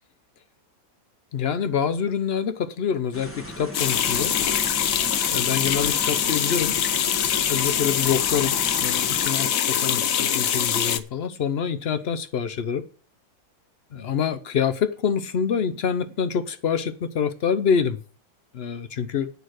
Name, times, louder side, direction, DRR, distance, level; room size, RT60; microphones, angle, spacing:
voice 1, 1.3-4.3 5.3-6.7 7.5-12.9 13.9-18.0 18.5-19.3, left 7 dB, 80° left, 0.5 m, -26 dB
sound 1, 3.1-9.3, equal, 10° left, 1.1 m, -38 dB
sound 2, 3.7-11.0, left 9 dB, 60° left, 0.9 m, -23 dB
9.3 x 6.4 x 7.8 m
omnidirectional pair, 2.0 m